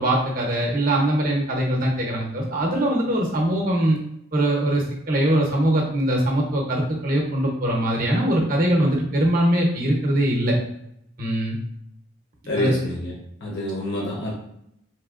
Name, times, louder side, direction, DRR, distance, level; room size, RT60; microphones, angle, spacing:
voice 1, 0.0-4.0 4.3-10.6 11.2-11.6 12.5-12.7, right 1 dB, 45° right, -1 dB, 0.7 m, -22 dB
voice 2, 12.5-13.1 13.4-14.3, left 1 dB, 55° left, -3 dB, 0.8 m, -27 dB
3.2 x 3.0 x 2.4 m, 0.76 s
head